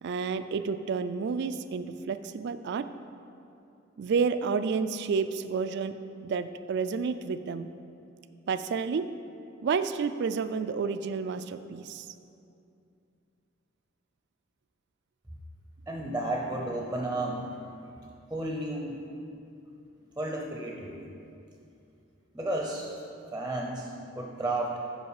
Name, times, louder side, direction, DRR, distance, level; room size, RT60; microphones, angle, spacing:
voice 1, 0.0-2.8 4.0-5.9 6.2-7.7 8.5-9.0 9.6-12.1, right 5 dB, 60° right, 12 dB, 0.3 m, -30 dB
voice 2, 15.9-17.6 18.3-19.0 20.2-21.0 22.3-23.0 23.3-24.8, right 1 dB, 10° right, 0 dB, 0.6 m, -32 dB
8.1 x 5.5 x 4.8 m, 2.6 s
head